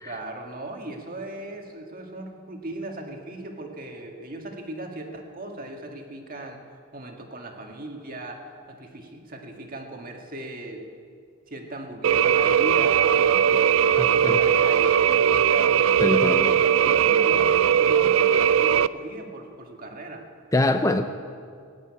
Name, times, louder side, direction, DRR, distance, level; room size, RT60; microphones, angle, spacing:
voice 1, 0.0-6.6 6.9-10.9 11.5-20.3, right 1 dB, 40° right, 2 dB, 1.8 m, -37 dB
sound 1, 12.0-18.9, right 8 dB, 65° right, 0.3 m, -19 dB
voice 2, 16.0-16.5 20.5-21.1, left 2 dB, 15° left, 8 dB, 0.5 m, -23 dB
17.5 x 8.6 x 9.7 m, 2.2 s
head